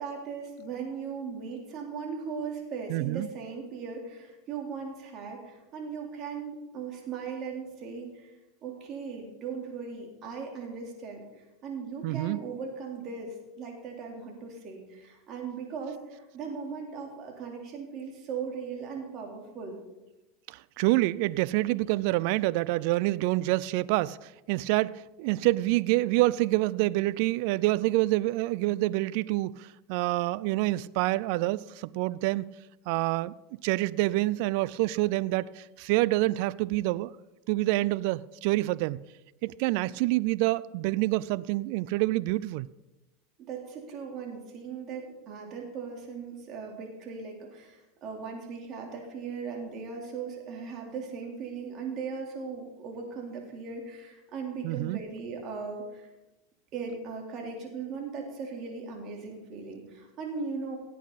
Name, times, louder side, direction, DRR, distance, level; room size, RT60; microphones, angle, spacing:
voice 1, 0.0-8.4 8.6-19.8 39.7-39.8 43.5-56.1 56.7-60.8, right 5 dB, 45° right, 3.6 m, -38 dB
voice 2, 2.9-3.3 12.0-12.4 20.5-32.4 32.9-33.3 33.6-37.1 37.5-39.0 39.4-42.7 54.6-55.0, right 18 dB, 65° right, 0.4 m, -27 dB
17.0 x 8.5 x 4.1 m
hypercardioid pair, 105°, 0 cm